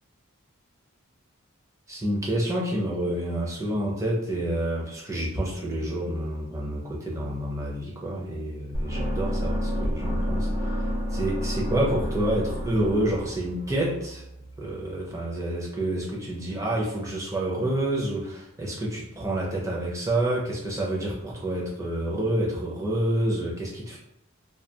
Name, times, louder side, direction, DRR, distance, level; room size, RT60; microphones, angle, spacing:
voice 1, 1.9-10.5 11.1-14.2 14.6-24.0, right 1 dB, 15° right, -3 dB, 0.5 m, -28 dB
sound 1, 8.7-14.8, equal, 65° right, 1.0 m, -30 dB
2.3 x 2.3 x 2.7 m, 0.80 s
head